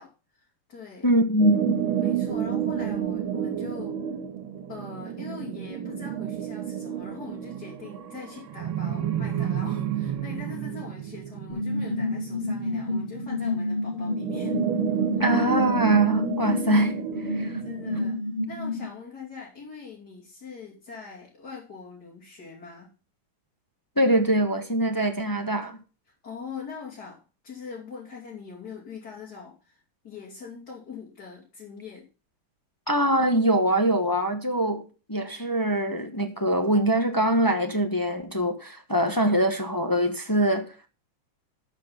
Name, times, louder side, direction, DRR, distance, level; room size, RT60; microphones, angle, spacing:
voice 1, 0.0-1.1 2.0-4.0 4.7-14.6 16.4-16.9 17.6-18.2 18.5-22.9 26.2-32.1, left 5 dB, 50° left, 3.7 m, -42 dB
voice 2, 1.0-1.8 15.2-16.9 17.3-17.6 24.0-25.8 32.9-40.9, right 1 dB, 15° left, 1.1 m, -23 dB
sound 1, 1.4-13.2 14.0-18.1, right 9 dB, 90° right, 2.3 m, -30 dB
sound 2, 11.5-18.9, left 2 dB, 80° left, 3.6 m, -30 dB
13.0 x 6.1 x 5.5 m
omnidirectional pair, 2.2 m